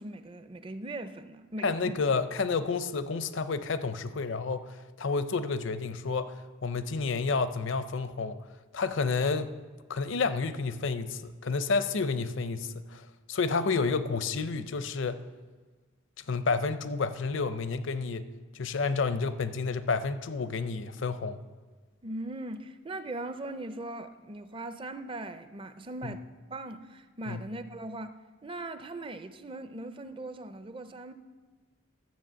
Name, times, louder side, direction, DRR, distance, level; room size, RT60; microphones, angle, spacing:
voice 1, 0.0-2.0 22.0-31.1, right 2 dB, 25° right, 0.5 m, -40 dB
voice 2, 1.6-8.4 8.7-9.5 9.9-15.2 16.3-18.2 18.5-21.4 27.3-27.4, left 4 dB, 60° left, 0.6 m, -30 dB
12.5 x 7.1 x 7.4 m
head